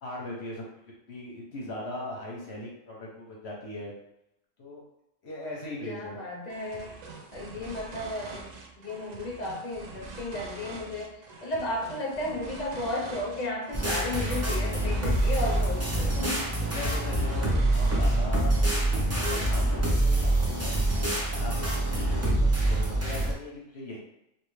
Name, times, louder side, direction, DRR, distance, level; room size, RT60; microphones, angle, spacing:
voice 1, 0.0-0.6 1.1-3.9 4.6-4.8 5.2-6.2 16.0-24.0, left 2 dB, 60° left, -3 dB, 1.0 m, -40 dB
voice 2, 5.8-6.9 7.3-8.4 8.8-16.4, left 2 dB, 40° left, -2 dB, 0.8 m, -34 dB
sound 1, 6.5-18.7, right 3 dB, 75° right, 0.3 m, -44 dB
sound 2, 13.7-23.3, right 1 dB, 15° right, 0.5 m, -25 dB
3.2 x 2.9 x 3.2 m, 0.86 s
omnidirectional pair, 1.4 m